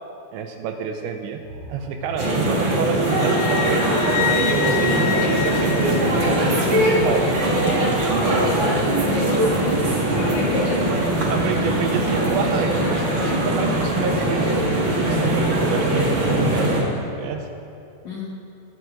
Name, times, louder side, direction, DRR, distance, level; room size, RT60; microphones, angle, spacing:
voice 1, 0.3-1.4 1.7-3.9 4.2-7.3 7.7-8.2 9.0-9.5 11.3-14.6 15.0-16.8 17.2-17.5, right 6 dB, 80° right, 5 dB, 2.9 m, -29 dB
sound 1, 1.4-16.4, right 1 dB, 30° right, 3.0 m, -37 dB
sound 2, 2.2-16.8, right 1 dB, 50° right, 1.5 m, -21 dB
Wind instrument woodwind instrument, 3.1-6.6, left 12 dB, 85° left, 2.9 m, -28 dB
voice 2, 9.0-10.8 18.0-18.2, left 3 dB, 60° left, -5 dB, 2.0 m, -30 dB
20.0 x 9.2 x 5.1 m, 2.6 s
omnidirectional pair, 5.5 m